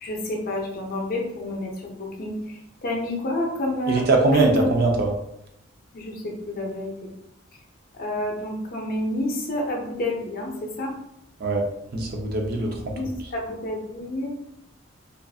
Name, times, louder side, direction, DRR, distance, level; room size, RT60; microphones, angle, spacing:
voice 1, 0.0-4.1 4.3-4.7 5.9-7.1 8.0-10.9 12.6-14.3, left 1 dB, 45° left, -1 dB, 0.5 m, -29 dB
voice 2, 3.9-5.1 11.4-11.6 11.9-12.7, right 2 dB, 50° right, 2 dB, 0.4 m, -21 dB
2.4 x 2.4 x 2.3 m, 0.79 s
head